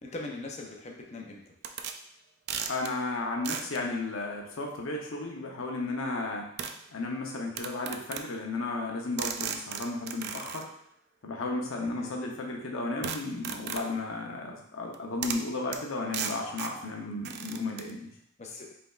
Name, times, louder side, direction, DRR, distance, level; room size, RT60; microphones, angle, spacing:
voice 1, 0.0-1.5 12.0-12.2 18.4-18.7, left 2 dB, 35° left, 1 dB, 0.6 m, -41 dB
sound 1, 1.6-2.0 2.5-2.9 3.4-3.8 5.2-5.3 6.6-6.8 7.6-8.3 9.2-10.6 13.0-13.9 14.9-15.0 15.2-15.5 15.7-15.8 16.1-16.8 17.2-17.9, right 7 dB, 55° right, 0.3 m, -36 dB
voice 2, 2.7-6.5 6.9-10.7 11.2-18.1, left 2 dB, 90° left, 0 dB, 0.7 m, -34 dB
5.3 x 3.4 x 2.4 m, 0.71 s
head